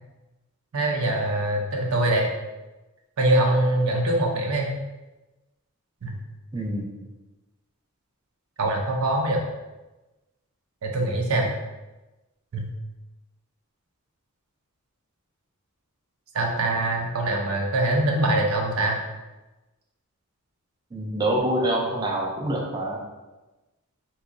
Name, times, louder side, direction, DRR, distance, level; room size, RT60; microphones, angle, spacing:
voice 1, 0.7-2.3 3.2-4.7 6.0-6.2 8.6-9.4 10.8-11.5 12.5-12.7 16.3-19.0, right 1 dB, 80° right, 1 dB, 0.6 m, -23 dB
voice 2, 6.5-6.9 20.9-23.0, right 1 dB, 20° right, -2 dB, 0.4 m, -26 dB
2.9 x 2.3 x 3.7 m, 1.1 s
head